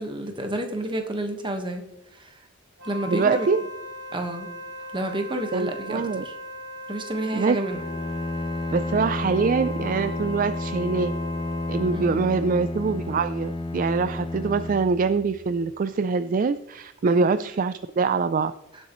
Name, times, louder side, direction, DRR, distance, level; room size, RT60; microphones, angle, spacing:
voice 1, 0.0-1.8 2.1-2.4 2.8-3.5 4.1-4.5 4.9-6.3 6.9-7.8 11.9-12.2 17.1-17.3, right 1 dB, 25° right, 5 dB, 1.3 m, -30 dB
Wind instrument woodwind instrument, 2.8-12.1, left 1 dB, 75° right, 3.5 m, -38 dB
voice 2, 3.1-3.6 5.5-6.3 7.3-7.6 8.7-11.1 11.7-18.5, right 4 dB, 45° right, 12 dB, 0.4 m, -24 dB
Bowed string instrument, 7.7-15.7, left 2 dB, 25° left, 0.5 m, -31 dB
17.5 x 8.1 x 3.1 m, 0.86 s
head